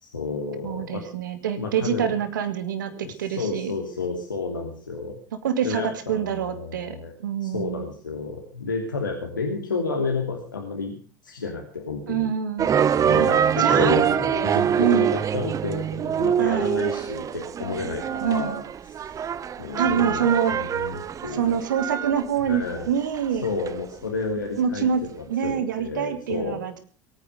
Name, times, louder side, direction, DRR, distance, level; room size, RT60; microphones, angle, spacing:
voice 1, 0.0-1.0 1.6-2.1 2.9-5.2 5.6-7.1 7.4-11.0 11.2-12.3 13.1-18.6 19.6-21.5 22.5-22.9 23.4-26.6, left 4 dB, 85° left, 1 dB, 2.9 m, -31 dB
voice 2, 0.6-3.7 5.4-5.8 6.1-7.0 7.2-7.8 12.1-12.7 13.2-13.3 13.6-14.0 14.8-15.1 16.4-16.8 18.2-18.6 19.8-20.5 21.3-23.5 24.5-25.0 25.3-26.8, right 8 dB, 75° right, 10 dB, 2.3 m, -25 dB
sound 1, 12.6-23.8, right 8 dB, 35° right, 1.0 m, -24 dB
22.0 x 9.7 x 6.7 m, 0.42 s
figure-of-eight pair, 75°, 10 cm